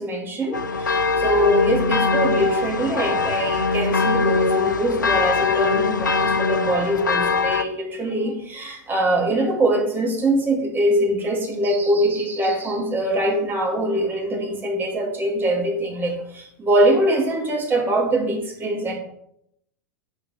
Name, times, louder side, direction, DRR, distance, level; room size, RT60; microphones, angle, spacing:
voice 1, 0.0-19.0, right 1 dB, 20° right, 1 dB, 1.6 m, -23 dB
sound 1, 0.5-7.6, left 4 dB, 80° left, 0.4 m, -22 dB
6.4 x 3.2 x 5.3 m, 0.77 s
figure-of-eight pair, 85°, 10 cm